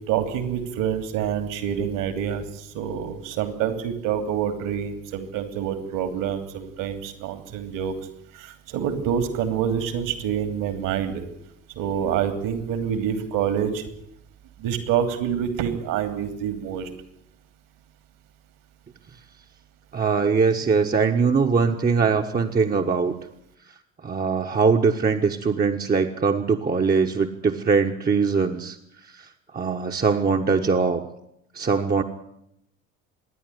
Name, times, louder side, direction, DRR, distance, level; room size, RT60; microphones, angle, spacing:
voice 1, 0.1-7.9 8.3-11.2 11.8-13.9 14.6-16.9, right 8 dB, 55° right, 9 dB, 2.9 m, -27 dB
voice 2, 19.9-23.1 24.0-28.8 29.1-29.3 29.5-31.0 31.5-32.0, right 5 dB, 25° right, 3 dB, 1.5 m, -21 dB
26.0 x 11.0 x 9.9 m, 0.77 s
figure-of-eight pair, 60°, 40 cm